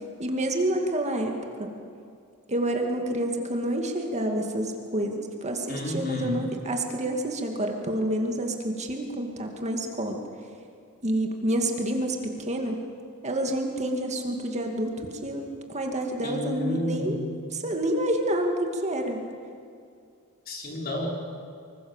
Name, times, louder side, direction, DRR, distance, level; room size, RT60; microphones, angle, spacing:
voice 1, 0.2-1.7 2.5-10.2 11.0-12.8 13.2-17.2 17.5-19.2, right 1 dB, 30° right, 3 dB, 2.3 m, -28 dB
voice 2, 5.7-6.4 16.2-17.1 20.5-21.1, left 1 dB, 45° left, -1 dB, 5.1 m, -31 dB
25.5 x 24.0 x 7.4 m, 2.3 s
head